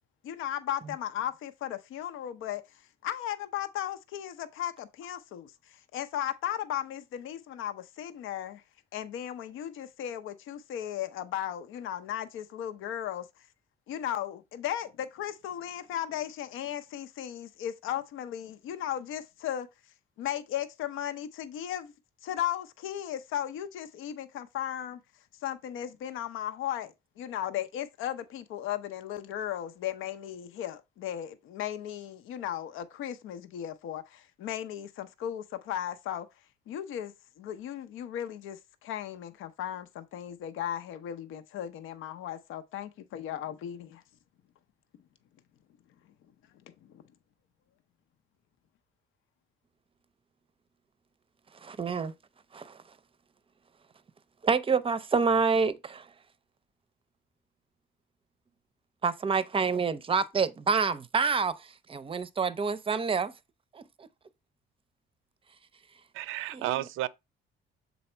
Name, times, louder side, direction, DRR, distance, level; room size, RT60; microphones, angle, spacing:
voice 1, 0.2-2.6 3.0-8.6 8.9-13.3 13.9-19.7 20.2-21.9 22.2-25.0 25.4-36.3 36.7-44.0 46.9-47.0, left 11 dB, 85° left, 0.7 m, -36 dB
voice 2, 51.6-52.1 52.5-52.8 54.4-56.1 59.0-63.3 63.7-64.1 66.5-66.6, right 5 dB, 25° right, 0.6 m, -27 dB
voice 3, 66.1-67.1, right 14 dB, 90° right, 0.5 m, -32 dB
6.9 x 4.1 x 4.3 m
cardioid pair, 125°, 20 cm